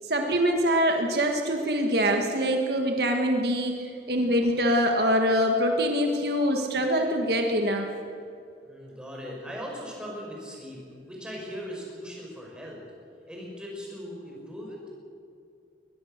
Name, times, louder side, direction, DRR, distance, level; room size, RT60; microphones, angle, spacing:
voice 1, 0.0-3.7 4.1-7.9, equal, 65° right, 3 dB, 1.7 m, -24 dB
voice 2, 8.6-12.8 13.3-14.8, equal, 5° right, -2 dB, 5.5 m, -39 dB
22.0 x 20.5 x 6.7 m, 2.4 s
head